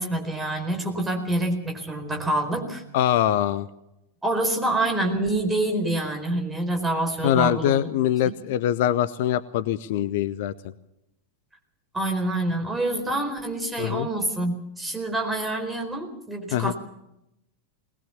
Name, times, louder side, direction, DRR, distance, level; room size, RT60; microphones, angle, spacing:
voice 1, 0.0-2.8 4.2-7.9 8.2-8.3 11.9-16.7, right 1 dB, 10° right, 4 dB, 4.5 m, -26 dB
voice 2, 2.9-3.7 7.2-10.5 13.8-14.1 16.5-16.7, left 11 dB, 50° left, 15 dB, 0.7 m, -23 dB
20.5 x 20.0 x 7.2 m, 0.88 s
figure-of-eight pair, 90°, 0 cm